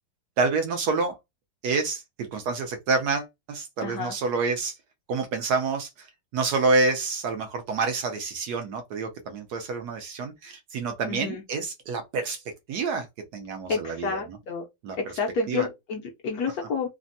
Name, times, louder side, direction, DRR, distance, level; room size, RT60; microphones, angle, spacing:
voice 1, 0.4-1.2 1.6-4.7 5.1-6.1 6.3-12.4 12.7-13.1 13.3-14.4 14.8-15.0 15.5-15.7, right 4 dB, 75° right, 0.9 m, -28 dB
voice 2, 3.8-4.1 11.1-11.4 13.7-14.6 15.0-16.9, left 4 dB, 70° left, 0.9 m, -30 dB
3.3 x 2.1 x 2.6 m
omnidirectional pair, 2.2 m